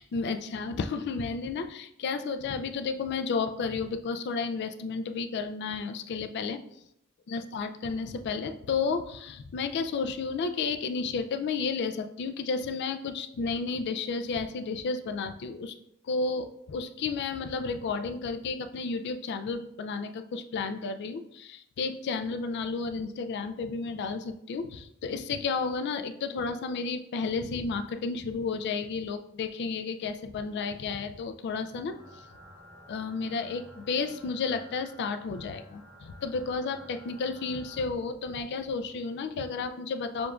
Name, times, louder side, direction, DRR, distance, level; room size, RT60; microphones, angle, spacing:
voice 1, 0.0-6.6 7.3-15.7 16.0-32.2 32.9-40.3, left 4 dB, 55° left, 9 dB, 0.3 m, -32 dB
sound 1, 31.9-37.8, equal, 80° right, 1.3 m, -52 dB
6.7 x 2.5 x 2.3 m, 0.77 s
head